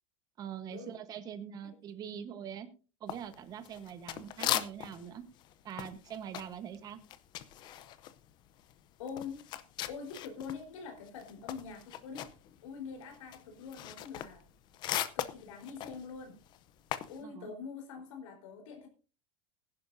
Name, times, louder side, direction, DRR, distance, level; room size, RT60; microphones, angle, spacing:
voice 1, 0.4-2.7 3.0-5.2 5.6-7.0 17.2-17.5, right 8 dB, 25° right, 11 dB, 1.1 m, -43 dB
sound 1, 3.1-5.1 5.4-10.6 10.9-17.2, left 12 dB, 25° left, 0.6 m, -39 dB
voice 2, 9.0-9.4 9.9-12.3 12.6-14.4 15.2-16.4 17.1-18.9, left 6 dB, 85° left, 3 dB, 4.0 m, -44 dB
20.5 x 11.0 x 2.6 m, 0.34 s
supercardioid pair, 175°, 16 cm